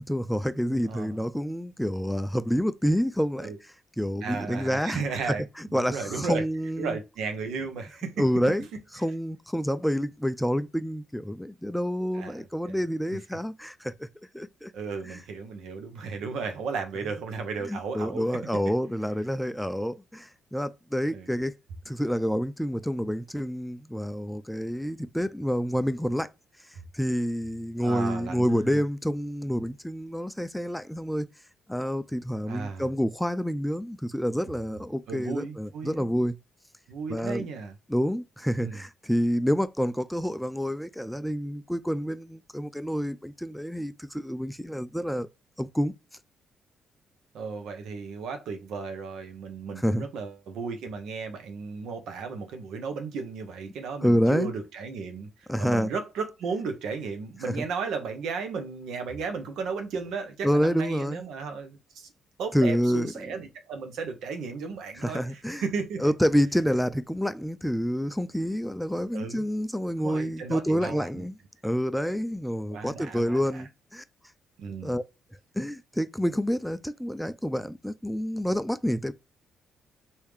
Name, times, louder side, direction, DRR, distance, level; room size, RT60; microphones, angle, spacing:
voice 1, 0.1-5.0 5.3-7.0 8.2-8.7 8.9-14.1 14.3-14.7 15.0-15.2 17.6-21.5 21.9-26.3 26.9-31.3 31.7-36.4 37.1-37.5 37.9-45.3 45.6-45.9 49.8-50.1 54.0-54.5 55.5-55.9 60.4-61.2 62.5-63.3 65.0-65.6 66.0-71.4 71.6-74.0 74.8-75.0 75.6-79.1, equal, ahead, 0.3 m, -28 dB
voice 2, 0.9-1.2 3.4-3.6 4.2-5.4 5.7-6.5 6.8-8.2 12.1-12.8 14.7-18.2 21.1-21.3 27.8-28.8 32.5-32.9 35.1-36.1 36.9-37.7 38.6-38.8 47.3-55.3 55.6-62.1 62.4-66.0 69.1-69.4 70.0-71.3 72.7-73.7 74.6-74.9, right 5 dB, 80° right, 0.8 m, -34 dB
3.2 x 2.7 x 3.4 m
cardioid pair, 90°, 0 cm